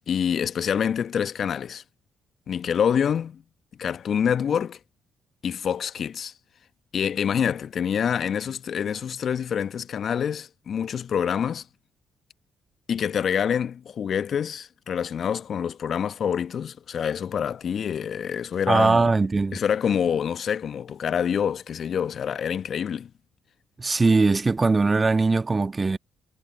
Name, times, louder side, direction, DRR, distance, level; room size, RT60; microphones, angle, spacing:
voice 1, 0.1-1.8 2.5-3.4 3.8-4.8 5.4-6.3 6.9-11.6 12.9-19.1 19.5-23.1, left 8 dB, 55° left, 1.0 m, -26 dB
voice 2, 18.7-19.6 23.8-26.0, right 3 dB, 30° right, 1.4 m, -21 dB
figure-of-eight pair, 45°, 0 cm